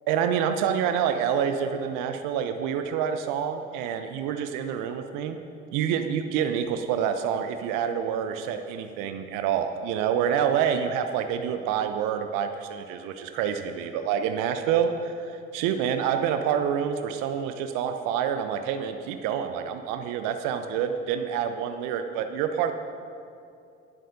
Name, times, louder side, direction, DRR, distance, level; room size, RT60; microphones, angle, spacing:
voice 1, 0.1-5.4 5.7-22.7, right 8 dB, 60° right, 7 dB, 0.9 m, -27 dB
18.0 x 7.7 x 5.3 m, 2.5 s
figure-of-eight pair, 60°, 36 cm